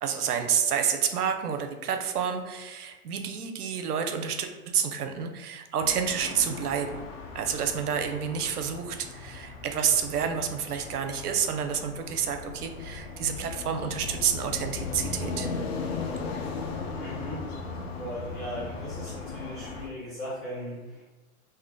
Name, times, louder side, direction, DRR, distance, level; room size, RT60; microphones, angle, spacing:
voice 1, 0.0-7.1 7.3-15.5, right 7 dB, 85° right, 6 dB, 0.6 m, -29 dB
sound 1, 5.8-19.9, left 4 dB, 45° left, 0.5 m, -37 dB
voice 2, 16.6-17.5 17.9-21.0, equal, 25° left, -11 dB, 1.0 m, -38 dB
2.7 x 2.4 x 3.6 m, 1.1 s
hypercardioid pair, 125°, 45 cm